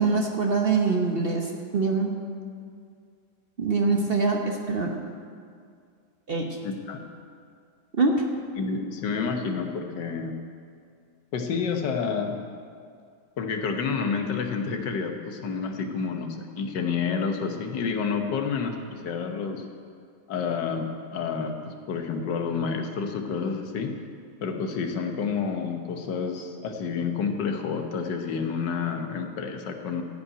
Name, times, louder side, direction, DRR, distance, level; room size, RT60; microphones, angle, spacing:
voice 1, 0.0-1.5 1.7-2.1 3.6-5.0 6.3-6.6 8.0-8.2, right 4 dB, 45° right, 1 dB, 0.9 m, -24 dB
voice 2, 6.6-7.0 8.6-10.4 11.3-12.4 13.4-19.7 20.3-23.9 24.4-30.0, left 5 dB, 85° left, 5 dB, 1.7 m, -29 dB
14.0 x 5.5 x 9.0 m, 2.2 s
omnidirectional pair, 1.8 m